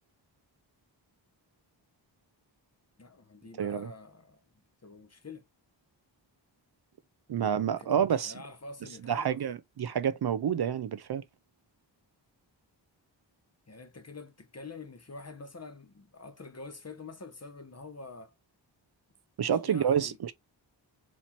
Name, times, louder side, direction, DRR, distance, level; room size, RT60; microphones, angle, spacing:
voice 1, 3.0-4.4 4.8-5.4 7.4-9.4 13.7-18.3 19.4-20.3, left 3 dB, 35° left, 1.0 m, -47 dB
voice 2, 3.6-3.9 7.3-8.3 9.1-11.2 19.4-20.3, right 8 dB, 60° right, 0.5 m, -28 dB
4.4 x 2.8 x 4.3 m
cardioid pair, 55°, 45 cm